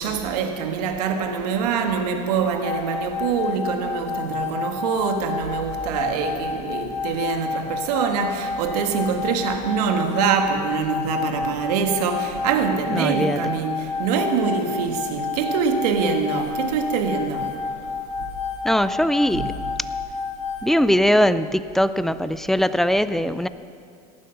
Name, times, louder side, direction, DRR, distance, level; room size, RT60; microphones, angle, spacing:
voice 1, 0.0-17.6 19.3-19.5, right 6 dB, 80° right, 1.7 m, -24 dB
sound 1, 2.6-20.7, left 6 dB, 35° left, 1.2 m, -30 dB
voice 2, 12.9-13.4 18.6-19.5 20.6-23.5, equal, ahead, 0.3 m, -20 dB
18.0 x 11.5 x 5.8 m
supercardioid pair, 120°, 20 cm